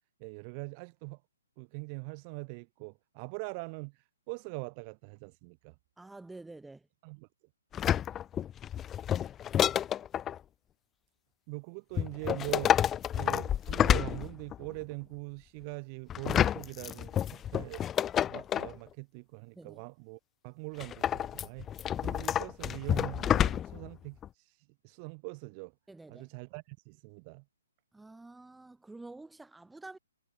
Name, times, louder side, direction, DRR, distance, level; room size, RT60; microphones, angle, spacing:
voice 1, 0.2-1.2 1.6-3.9 4.3-5.7 7.0-7.3 11.5-12.8 13.1-17.8 18.3-21.7 22.0-24.6 24.8-25.7 26.1-27.4, right 35 dB, 30° right, 3.5 m, -42 dB
voice 2, 6.0-6.9 19.6-19.8 25.9-26.3 27.9-30.0, right 2 dB, 5° right, 7.0 m, -49 dB
sound 1, 7.7-10.4 12.0-14.7 16.1-18.8 20.8-23.9 24.2-24.3, left 10 dB, 15° left, 0.6 m, -29 dB
figure-of-eight pair, 125°, 0 cm